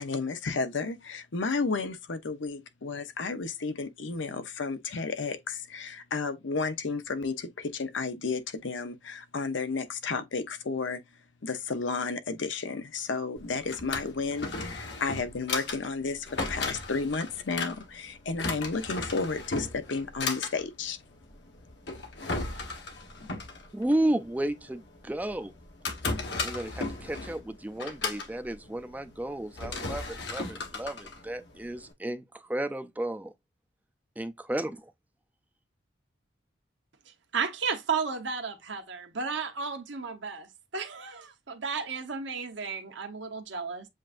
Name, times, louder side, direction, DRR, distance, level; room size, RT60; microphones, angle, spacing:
voice 1, 0.0-11.0 11.4-21.0, left 4 dB, 90° left, 0.8 m, -32 dB
Drawer open or close, 13.4-31.9, left 3 dB, 65° left, 1.1 m, -36 dB
voice 2, 23.7-25.5 26.4-33.3 34.2-34.8, right 1 dB, 10° right, 0.3 m, -32 dB
voice 3, 37.3-43.9, right 5 dB, 85° right, 1.0 m, -33 dB
7.6 x 2.6 x 2.5 m
head